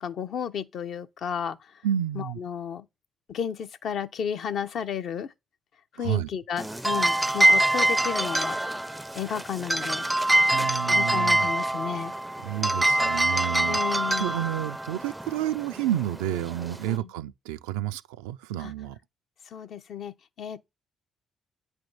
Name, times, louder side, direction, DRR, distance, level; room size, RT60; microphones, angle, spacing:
voice 1, 0.0-1.6 2.1-2.8 3.3-5.3 6.0-8.6 9.2-10.1 10.9-12.1 13.7-14.3 16.9-17.1 18.6-18.7 19.5-20.6, left 8 dB, 60° left, 0.6 m, -33 dB
voice 2, 1.8-2.4 6.0-6.3 10.5-11.5 12.4-19.0, right 12 dB, 75° right, 0.3 m, -30 dB
sound 1, 6.6-17.0, right 1 dB, 10° right, 0.4 m, -25 dB
8.8 x 3.4 x 4.0 m
figure-of-eight pair, 45°, 0 cm